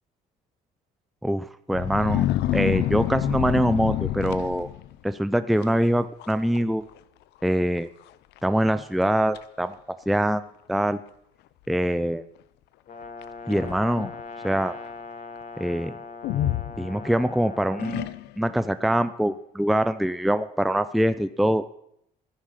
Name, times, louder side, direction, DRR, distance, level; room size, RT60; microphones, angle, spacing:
voice 1, 1.2-4.7 5.0-6.8 7.4-7.9 8.4-9.8 10.1-11.0 11.7-12.2 13.5-14.1 14.4-14.8 15.6-15.9 16.8-18.1 18.4-21.6, right 1 dB, ahead, 12 dB, 0.5 m, -24 dB
sound 1, 1.7-5.0 5.6-5.9 6.2-6.6 6.9-7.0 7.8-7.9 8.4-8.5 9.0-9.4 10.3-10.4 13.2-14.2 16.2-17.3 17.8-18.5, left 14 dB, 80° left, 0.7 m, -28 dB
Brass instrument, 12.9-18.1, left 4 dB, 55° left, 4.2 m, -40 dB
14.0 x 9.9 x 5.8 m, 0.75 s
cardioid pair, 110°, 17 cm